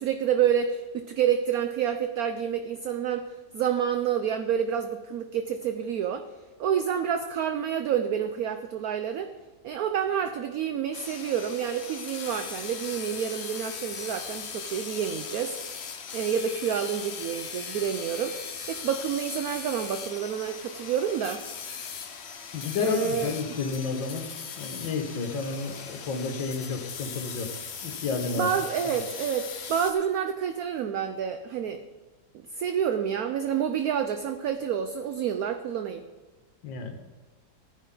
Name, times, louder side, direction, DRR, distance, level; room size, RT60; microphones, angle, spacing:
voice 1, 0.0-3.3 3.5-6.3 6.6-9.3 9.6-15.6 16.1-18.4 18.7-21.4 22.8-23.3 28.3-31.8 32.3-36.0, right 8 dB, 65° right, 8 dB, 1.0 m, -28 dB
sound 1, 10.9-29.9, left 6 dB, 50° left, 0.8 m, -39 dB
voice 2, 22.5-24.3 24.6-27.5 27.8-28.5 28.8-29.0 36.6-37.0, left 4 dB, 80° left, 4 dB, 2.1 m, -31 dB
15.0 x 10.0 x 3.9 m, 1.2 s
omnidirectional pair, 2.0 m